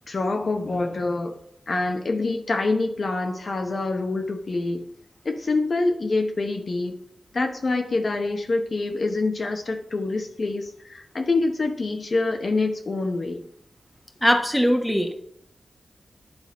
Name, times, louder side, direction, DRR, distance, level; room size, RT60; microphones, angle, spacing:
voice 1, 0.1-1.4 1.7-4.9 5.2-6.9 7.3-13.4, left 3 dB, 60° left, 4 dB, 0.9 m, -26 dB
voice 2, 14.2-15.1, equal, 5° left, 4 dB, 1.1 m, -20 dB
10.5 x 3.9 x 4.1 m, 0.70 s
cardioid pair, 55°, 0 cm